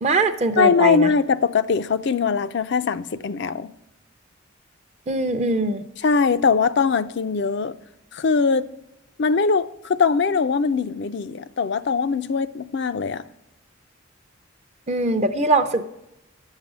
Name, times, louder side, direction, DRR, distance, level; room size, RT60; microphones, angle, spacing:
voice 1, 0.0-1.1 5.1-5.8 14.9-15.8, right 2 dB, 35° right, 0.6 m, -21 dB
voice 2, 0.6-3.7 6.0-7.7 8.1-8.7 9.2-13.2, left 5 dB, 55° left, 0.5 m, -21 dB
11.0 x 7.4 x 6.1 m
head